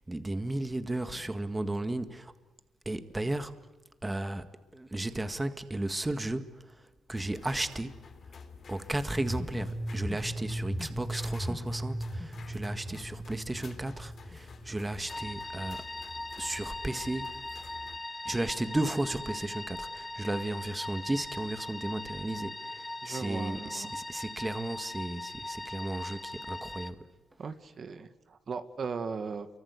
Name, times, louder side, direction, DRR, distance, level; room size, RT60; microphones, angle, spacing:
voice 1, 0.0-2.3 2.9-3.6 4.0-4.5 4.7-8.0 8.7-15.9 16.4-17.4 18.3-27.1, right 2 dB, 15° right, 1.8 m, -34 dB
sound 1, 7.1-18.0, left 4 dB, 50° left, 3.6 m, -50 dB
sound 2, 9.1-15.1, right 1 dB, ahead, 3.4 m, -37 dB
sound 3, 15.1-26.9, left 2 dB, 20° left, 1.6 m, -40 dB
voice 2, 23.0-23.9 27.4-29.5, right 5 dB, 50° right, 1.8 m, -38 dB
28.5 x 24.5 x 8.3 m
cardioid pair, 80°, 0 cm